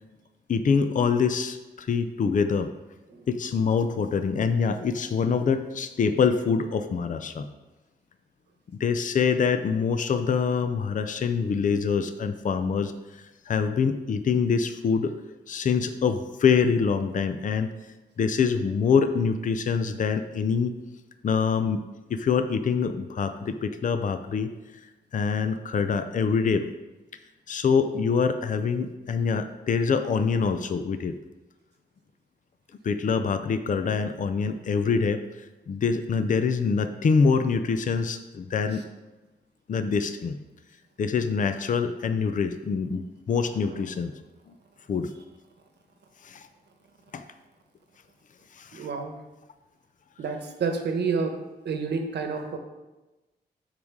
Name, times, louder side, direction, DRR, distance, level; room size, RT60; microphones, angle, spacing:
voice 1, 0.5-2.7 3.3-7.5 8.8-15.1 15.5-17.7 18.2-20.8 21.2-21.8 22.1-24.5 25.1-26.7 27.5-31.2 32.8-35.2 35.7-38.8 39.7-40.4 41.0-44.1 44.5-44.6 44.9-45.1 46.2-46.5 47.1-47.2 48.6-48.9, left 5 dB, 50° left, 9 dB, 0.6 m, -25 dB
voice 2, 48.7-49.1 50.2-51.3 51.6-52.6, right 5 dB, 80° right, 5 dB, 1.2 m, -29 dB
12.5 x 4.8 x 3.7 m, 1.1 s
cardioid pair, 85°, 17 cm